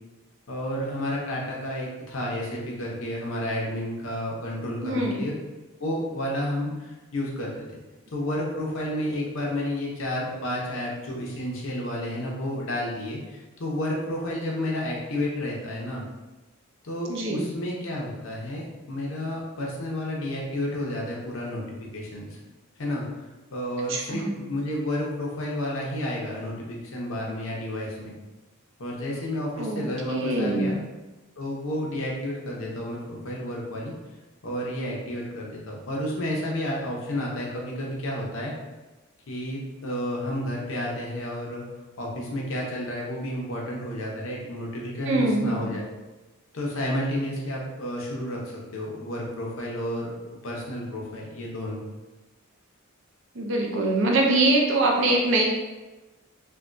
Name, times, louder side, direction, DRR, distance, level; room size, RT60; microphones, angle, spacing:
voice 1, 0.5-5.4 5.8-7.6 8.1-16.0 16.8-21.6 21.9-22.4 22.8-23.1 23.5-28.1 28.8-30.8 31.4-33.9 34.4-38.5 39.3-41.7 42.0-45.8 46.5-48.4 48.7-50.1 50.4-51.8, left 1 dB, 65° left, -2 dB, 0.7 m, -31 dB
voice 2, 4.8-5.2 17.1-17.5 23.9-24.3 29.6-30.7 45.1-45.7 53.3-55.4, right 2 dB, 55° right, 0 dB, 0.5 m, -23 dB
3.3 x 2.2 x 2.5 m, 1.1 s
head